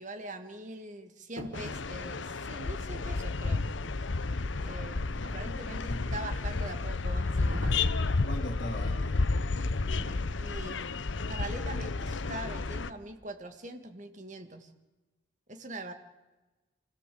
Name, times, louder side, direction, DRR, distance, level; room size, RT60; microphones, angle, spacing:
voice 1, 0.0-3.6 4.6-7.7 10.0-10.9 11.3-14.7 15.5-15.9, right 1 dB, 40° right, 7 dB, 2.0 m, -43 dB
sound 1, 1.4-1.9 7.5-8.0 10.0-10.3 10.6-10.9, right 1 dB, 75° right, 3.7 m, -43 dB
sound 2, 1.5-12.9, left 3 dB, 70° left, 0.8 m, -31 dB
voice 2, 5.1-5.6 5.8-6.1 8.2-9.3, left 1 dB, 50° left, -2 dB, 2.8 m, -40 dB
25.0 x 17.0 x 8.6 m, 1.2 s
head